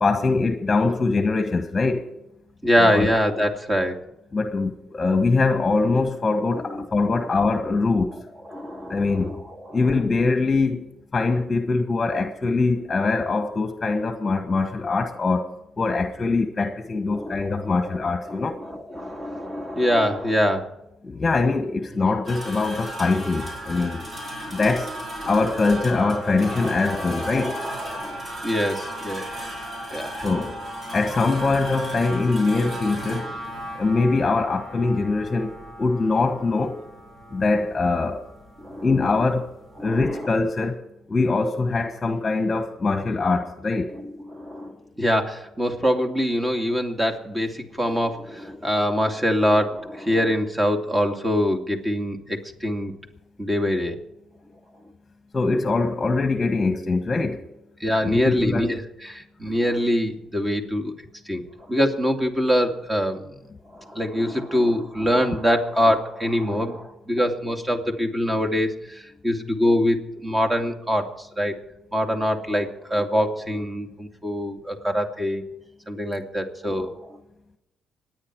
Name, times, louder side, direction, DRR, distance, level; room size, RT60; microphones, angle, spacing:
voice 1, 0.0-2.1 2.8-3.1 4.3-8.2 8.9-9.4 9.7-18.6 21.0-24.0 24.5-24.9 25.3-27.6 30.2-30.6 30.9-33.3 33.7-36.8 37.3-38.3 38.8-39.5 39.8-40.8 41.1-43.9 55.3-57.4 58.0-58.7, left 3 dB, 25° left, 1.4 m, -23 dB
voice 2, 2.6-4.0 6.7-6.8 7.2-7.3 8.5-9.9 17.1-17.9 18.3-20.7 24.4-24.5 25.2-25.6 26.1-26.2 26.6-29.3 29.9-30.1 38.6-38.9 39.8-40.2 43.9-52.9 53.4-54.0 57.8-60.9 61.3-61.4 61.7-63.3 63.7-71.5 71.9-75.4 75.9-77.2, equal, 15° right, 2.4 m, -24 dB
sound 1, 22.2-39.8, equal, 35° right, 5.4 m, -35 dB
26.0 x 9.7 x 4.7 m
cardioid pair, 90°, 0 cm